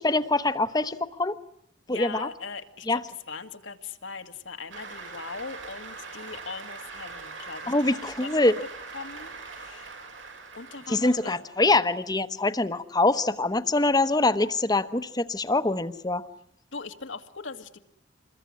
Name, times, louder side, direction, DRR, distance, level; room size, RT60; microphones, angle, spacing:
voice 1, 0.0-1.4 1.9-2.3 2.9-3.0 7.7-8.5 10.9-16.3, left 2 dB, 20° left, 12 dB, 1.1 m, -24 dB
voice 2, 1.9-3.0 3.3-8.5 8.9-9.9 10.5-11.5 16.7-17.8, left 4 dB, 85° left, 7 dB, 2.1 m, -40 dB
Cheering / Applause, 4.7-11.6, right 4 dB, 85° right, 6.6 m, -42 dB
27.5 x 22.0 x 9.8 m, 0.74 s
head